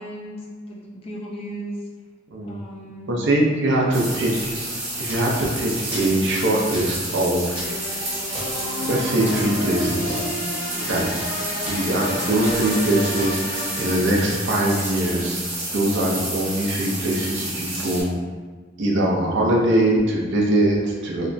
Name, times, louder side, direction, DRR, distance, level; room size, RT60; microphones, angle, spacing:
voice 1, 0.0-1.8 2.4-3.1, right 1 dB, 30° left, -3 dB, 0.4 m, -36 dB
voice 2, 3.1-4.5 5.0-7.6 8.8-10.2 10.8-11.2 11.6-15.4 15.7-18.1 18.8-21.3, right 1 dB, 60° right, -2 dB, 0.5 m, -22 dB
sound 1, 3.9-18.0, right 2 dB, 85° right, 1.1 m, -30 dB
sound 2, 4.4-13.3, equal, 5° right, 0.9 m, -39 dB
sound 3, 7.5-14.6, left 1 dB, 85° left, 0.6 m, -31 dB
2.8 x 2.2 x 2.5 m, 1.4 s
head